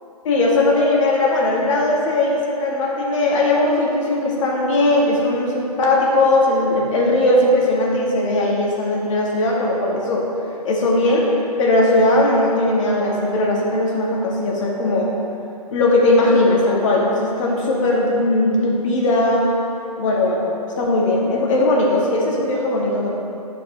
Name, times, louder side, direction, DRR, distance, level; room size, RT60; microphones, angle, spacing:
voice 1, 0.2-10.3 10.6-11.3 11.6-15.1 15.7-19.5 20.0-23.2, left 2 dB, 50° left, -2 dB, 1.9 m, -18 dB
8.3 x 5.2 x 5.4 m, 2.7 s
hypercardioid pair, 130°, 20 cm